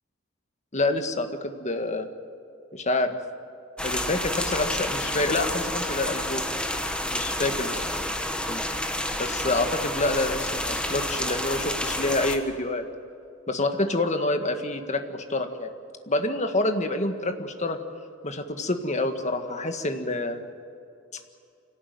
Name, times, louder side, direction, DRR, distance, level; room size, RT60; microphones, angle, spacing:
voice 1, 0.7-2.1 2.7-3.2 3.8-6.4 7.1-7.7 8.5-8.6 9.2-12.8 13.5-15.7 16.1-17.8 18.2-20.4, left 2 dB, 35° left, 6 dB, 1.7 m, -27 dB
sound 1, 3.8-12.4, left 1 dB, 5° left, 1.6 m, -29 dB
25.0 x 17.5 x 9.4 m, 2.5 s
head